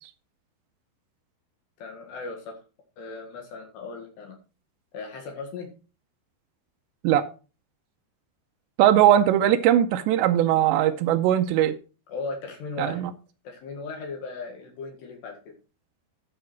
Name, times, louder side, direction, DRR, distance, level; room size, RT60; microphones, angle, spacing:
voice 1, 1.8-2.6 3.0-4.4 4.9-5.7 12.1-13.0 13.5-15.5, left 4 dB, 70° left, 3.9 m, -37 dB
voice 2, 8.8-11.8 12.8-13.1, right 11 dB, 90° right, 3.0 m, -20 dB
12.5 x 6.1 x 4.5 m
omnidirectional pair, 5.1 m